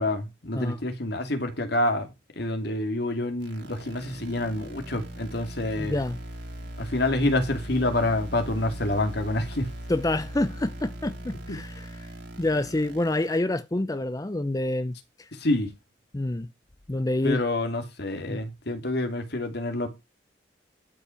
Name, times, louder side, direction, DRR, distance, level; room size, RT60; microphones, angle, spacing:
voice 1, 0.0-2.1 2.4-6.0 6.8-9.7 11.5-11.6 15.3-15.7 17.2-19.9, left 1 dB, 60° left, 2.5 m, -27 dB
sound 1, 3.4-13.4, right 1 dB, 70° right, 3.0 m, -39 dB
voice 2, 5.8-6.2 9.9-12.1 12.4-15.3 16.1-16.5 16.9-17.4 18.3-18.4, left 1 dB, 20° left, 0.6 m, -27 dB
12.5 x 5.9 x 5.7 m
head